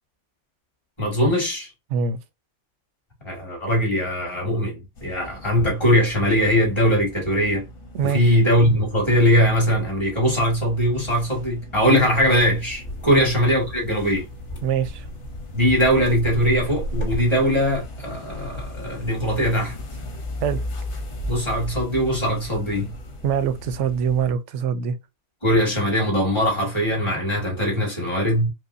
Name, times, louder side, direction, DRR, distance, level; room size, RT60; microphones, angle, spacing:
voice 1, 1.0-1.7 3.2-7.6 8.0-14.3 15.5-19.7 21.3-22.9 25.4-28.5, equal, 25° left, 2.0 m, -21 dB
voice 2, 1.9-2.2 7.9-8.4 13.1-13.3 14.6-15.1 20.4-20.6 23.2-25.0, right 7 dB, 80° right, 0.9 m, -24 dB
sound 1, 5.0-24.3, left 1 dB, 70° left, 1.4 m, -37 dB
sound 2, 11.8-17.9, equal, 55° left, 2.2 m, -34 dB
4.8 x 2.1 x 2.6 m
omnidirectional pair, 1.2 m